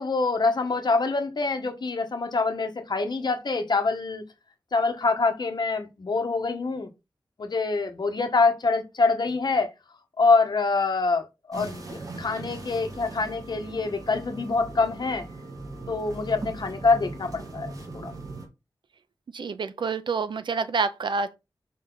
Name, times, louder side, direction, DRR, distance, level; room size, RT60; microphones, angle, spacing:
voice 1, 0.0-4.2 4.7-6.9 7.4-9.7 10.2-15.2 15.9-18.1, left 3 dB, 65° left, 1.6 m, -25 dB
sound 1, 11.5-18.5, right 2 dB, 50° right, 2.9 m, -39 dB
voice 2, 19.3-21.4, right 5 dB, 90° right, 0.8 m, -28 dB
6.6 x 5.4 x 4.0 m
wide cardioid pair, 65°, 8 cm